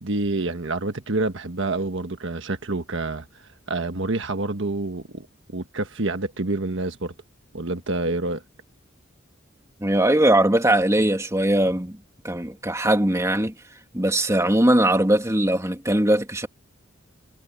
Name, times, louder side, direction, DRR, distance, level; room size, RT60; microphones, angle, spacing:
voice 1, 0.0-3.4 3.7-5.3 5.5-7.1 7.5-8.4, right 2 dB, 65° right, 1.4 m, -27 dB
voice 2, 9.8-12.0 12.2-13.5 13.9-16.5, right 1 dB, 15° right, 2.5 m, -20 dB
head